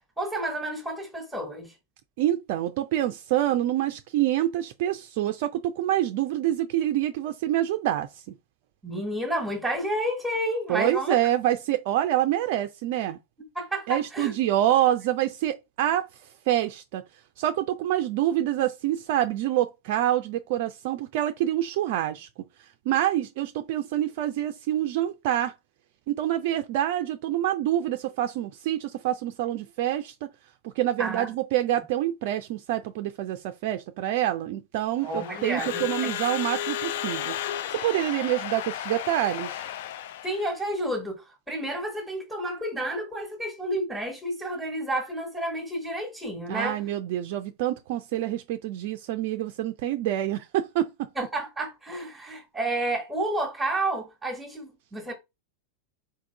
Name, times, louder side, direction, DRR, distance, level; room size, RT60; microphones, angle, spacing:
voice 1, 0.2-1.7 8.8-11.2 13.5-14.3 31.0-31.3 35.0-36.1 40.2-46.8 51.2-55.1, right 1 dB, 5° right, 1.4 m, -30 dB
voice 2, 2.2-8.2 10.7-13.2 13.9-16.1 16.5-17.0 17.4-22.3 22.6-25.5 26.1-30.3 30.6-37.4 37.7-39.6 46.5-51.1, right 13 dB, 50° right, 0.4 m, -26 dB
Crowd / Alarm, 35.0-40.6, left 11 dB, 55° left, 0.4 m, -33 dB
4.4 x 3.5 x 3.3 m
figure-of-eight pair, 90°, 0 cm